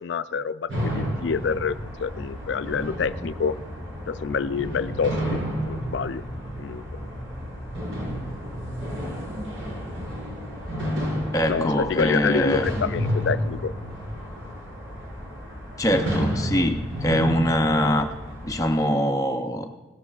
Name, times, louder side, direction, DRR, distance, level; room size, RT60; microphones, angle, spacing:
voice 1, 0.0-3.6 4.1-5.4 5.7-6.2 6.6-6.8 11.5-13.7, left 5 dB, 75° left, 13 dB, 0.4 m, -27 dB
sound 1, 0.7-18.7, equal, 75° right, 4.7 m, -31 dB
voice 2, 11.3-12.7 15.8-18.1 18.4-19.7, equal, 20° left, 5 dB, 0.5 m, -23 dB
17.5 x 13.0 x 2.4 m, 1.2 s
head